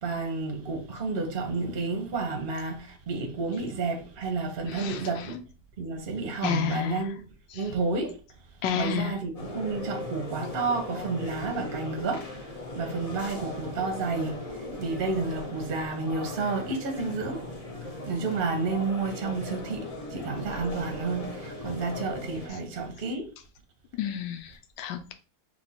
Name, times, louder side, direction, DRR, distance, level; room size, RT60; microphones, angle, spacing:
voice 1, 0.0-5.4 5.8-7.2 7.5-8.1 8.7-12.3 12.8-14.4 14.8-17.4 18.1-23.3, right 4 dB, 40° right, 0.8 m, -30 dB
voice 2, 4.7-5.0 6.4-7.0 8.6-9.1 24.0-24.5 24.8-25.1, left 9 dB, 90° left, 1.3 m, -29 dB
sound 1, 9.4-22.5, left 2 dB, 50° left, 0.4 m, -38 dB
3.5 x 3.0 x 4.1 m
omnidirectional pair, 1.9 m